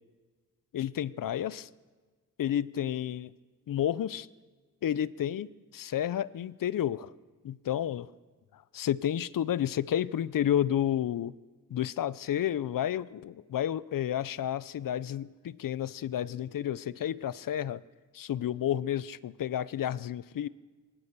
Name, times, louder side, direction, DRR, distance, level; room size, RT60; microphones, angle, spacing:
voice 1, 0.7-1.7 2.4-3.3 3.7-4.3 4.8-7.1 7.4-8.1 8.7-11.3 11.7-17.8 18.1-20.5, left 10 dB, 70° left, 19 dB, 0.6 m, -31 dB
21.5 x 18.5 x 6.8 m, 1.4 s
wide cardioid pair, 160°, 34 cm